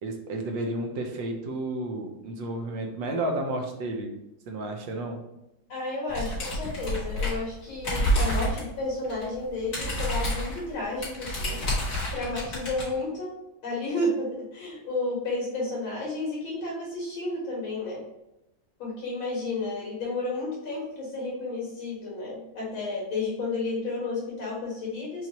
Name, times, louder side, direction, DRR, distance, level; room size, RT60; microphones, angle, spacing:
voice 1, 0.0-4.1 4.5-5.2, right 1 dB, 75° right, 3 dB, 1.3 m, -32 dB
voice 2, 5.7-13.3 13.6-18.0 18.8-25.3, left 2 dB, 85° left, -6 dB, 2.3 m, -32 dB
sound 1, 6.1-7.5 7.8-8.7 9.0-9.2 9.5-12.8, equal, 45° left, 1.9 m, -28 dB
5.5 x 2.4 x 3.0 m, 0.89 s
omnidirectional pair, 2.1 m